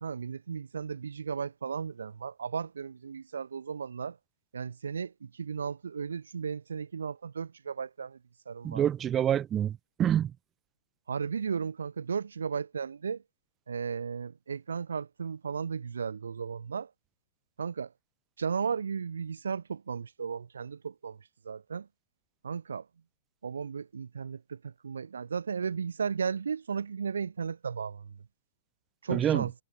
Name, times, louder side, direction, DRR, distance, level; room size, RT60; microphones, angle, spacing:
voice 1, 0.0-4.2 4.5-8.2 8.5-8.8 11.1-13.2 13.7-16.9 17.6-17.9 18.4-21.2 21.4-21.9 22.4-22.8 23.4-28.0 29.0-29.5, right 6 dB, 80° right, 0.8 m, -35 dB
voice 2, 8.6-10.3 29.1-29.5, right 10 dB, 25° right, 1.6 m, -27 dB
figure-of-eight pair, 100°, 0 cm